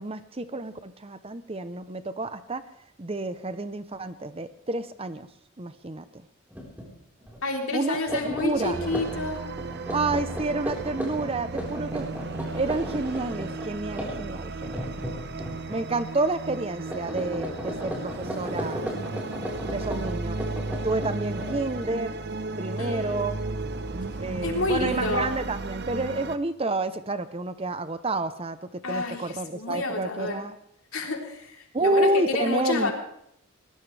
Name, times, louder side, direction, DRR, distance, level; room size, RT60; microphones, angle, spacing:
voice 1, 0.0-2.6 3.0-5.3 5.6-6.0 7.7-8.8 9.9-12.1 12.5-15.0 15.7-18.9 19.7-20.4 20.8-22.1 22.6-23.4 24.2-30.5 31.7-32.9, right 2 dB, 25° right, 12 dB, 0.8 m, -29 dB
sound 1, 6.5-6.9 7.2-7.4 7.9-16.0 16.3-16.6 16.9-22.0, equal, 10° right, 4.5 m, -36 dB
voice 2, 7.4-9.4 22.8-23.3 24.4-25.3 28.8-30.4 30.9-32.9, left 2 dB, 75° left, 1 dB, 3.6 m, -29 dB
sound 2, 8.7-26.4, right 3 dB, 50° right, 0.9 m, -34 dB
22.5 x 19.0 x 3.4 m, 0.71 s
head